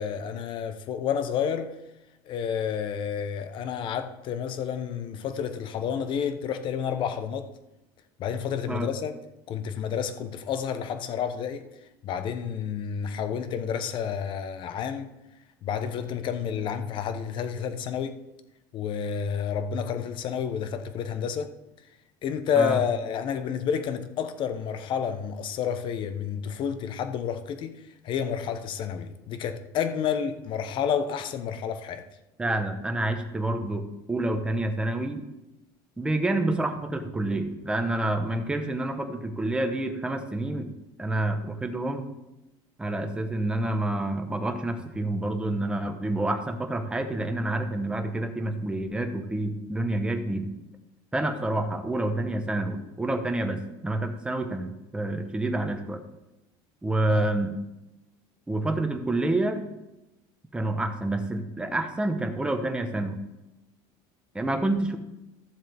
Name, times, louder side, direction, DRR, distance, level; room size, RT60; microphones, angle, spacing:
voice 1, 0.0-1.7 2.3-7.5 8.2-9.2 9.5-11.6 12.0-15.1 15.6-18.2 18.7-21.5 22.2-32.0 57.1-57.3, left 7 dB, 45° left, 1.0 m, -30 dB
voice 2, 32.4-35.2 36.0-40.7 41.0-42.1 42.8-50.5 51.1-56.0 56.8-57.6 58.5-59.6 60.5-63.2 64.3-65.0, right 2 dB, 10° right, 1.1 m, -28 dB
14.0 x 7.4 x 3.5 m
cardioid pair, 140°, 12 cm